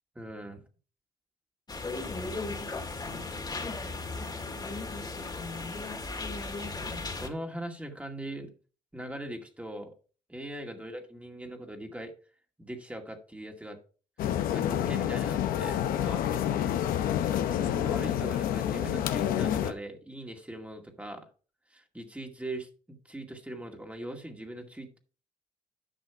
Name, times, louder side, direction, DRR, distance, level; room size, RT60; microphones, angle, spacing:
voice 1, 0.2-0.6 3.5-4.0 7.2-8.5 8.9-9.9 10.3-12.1 12.6-13.8 14.5-16.8 17.5-21.3 21.7-25.0, right 1 dB, 10° right, 3 dB, 2.1 m, -41 dB
sound 1, 1.7-7.3, left 3 dB, 30° left, 2.1 m, -36 dB
sound 2, 14.2-19.7, left 10 dB, 85° left, 0.9 m, -28 dB
11.0 x 5.9 x 4.7 m, 0.37 s
cardioid pair, 75°, 14 cm